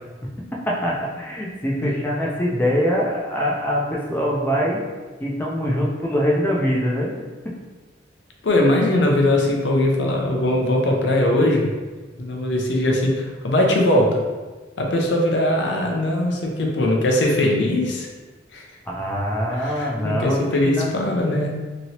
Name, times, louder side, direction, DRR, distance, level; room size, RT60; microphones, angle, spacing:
voice 1, 0.7-4.8 5.2-7.2 18.9-20.9, equal, 10° left, -3 dB, 0.4 m, -23 dB
voice 2, 8.4-11.7 12.2-14.2 14.8-18.1 18.5-18.6 19.6-21.5, left 1 dB, 70° left, 0 dB, 0.6 m, -20 dB
2.9 x 2.8 x 2.8 m, 1.3 s
head